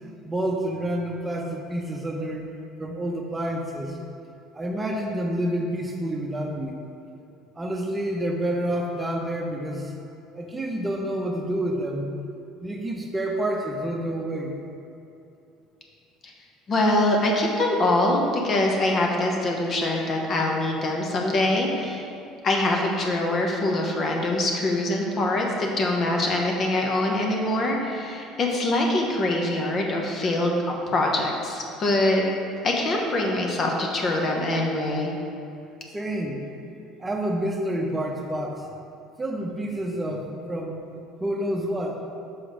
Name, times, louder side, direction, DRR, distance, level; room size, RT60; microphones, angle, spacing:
voice 1, 0.2-2.4 2.8-4.0 4.5-6.8 7.6-9.9 10.4-12.1 12.6-14.6 35.9-36.5 37.0-38.6 39.2-40.8 41.2-42.0, right 1 dB, 20° right, 1 dB, 0.8 m, -28 dB
voice 2, 16.7-22.0 22.4-30.5 30.9-32.2 32.6-35.1, left 1 dB, 45° left, 0 dB, 1.1 m, -24 dB
5.9 x 4.9 x 5.1 m, 2.7 s
supercardioid pair, 90°, 0 cm